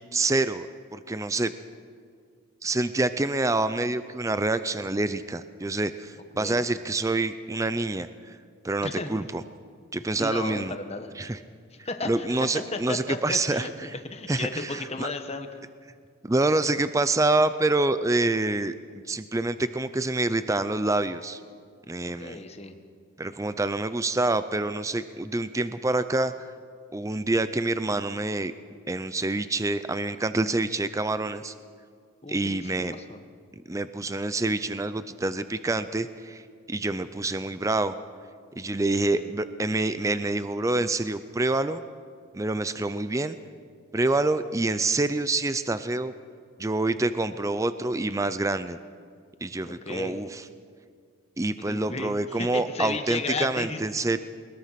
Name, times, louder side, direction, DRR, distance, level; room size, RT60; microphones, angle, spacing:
voice 1, 0.1-0.7 0.9-1.5 2.6-8.4 8.6-9.4 9.9-10.7 11.2-11.4 12.0-13.9 14.3-15.1 16.2-18.7 19.1-21.4 21.9-22.4 23.2-26.5 26.9-28.5 28.9-31.5 32.3-32.9 33.7-36.4 36.7-37.9 38.6-41.8 42.3-43.4 43.9-46.1 46.6-48.8 49.4-50.4 51.4-54.2, right 2 dB, 15° right, 12 dB, 0.4 m, -27 dB
voice 2, 8.8-9.1 10.2-11.1 11.8-15.5 22.0-22.7 32.2-33.2 39.1-39.3 49.6-50.2 51.6-53.8, left 3 dB, 30° left, 7 dB, 1.3 m, -34 dB
21.5 x 21.0 x 5.8 m, 2.1 s
head